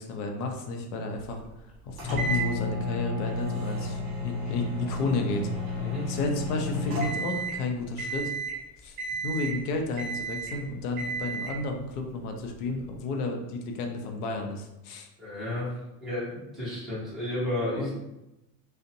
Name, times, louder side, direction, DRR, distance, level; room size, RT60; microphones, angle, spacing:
voice 1, 0.0-5.8 6.1-8.3 8.8-9.0 9.2-15.1 17.7-17.9, left 2 dB, 80° left, 3 dB, 0.6 m, -32 dB
sound 1, 2.0-7.6 8.0-8.6 9.0-9.6 10.0-10.6 11.0-11.6, equal, 40° right, 1.1 m, -32 dB
voice 2, 15.2-17.9, left 1 dB, ahead, -12 dB, 0.6 m, -32 dB
2.6 x 2.1 x 2.5 m, 0.93 s
cardioid pair, 175°, 45 cm